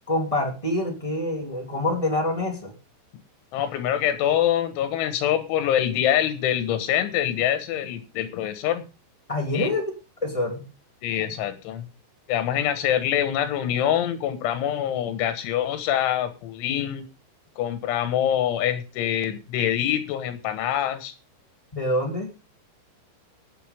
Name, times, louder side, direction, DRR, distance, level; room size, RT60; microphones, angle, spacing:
voice 1, 0.1-2.7 9.3-9.9 10.2-10.7 21.7-22.3, left 1 dB, 10° left, 1 dB, 1.6 m, -26 dB
voice 2, 3.5-8.8 9.5-9.7 11.0-11.9 12.3-17.0 17.6-21.1, left 10 dB, 85° left, 10 dB, 3.8 m, -25 dB
19.5 x 8.0 x 3.6 m, 0.29 s
omnidirectional pair, 5.3 m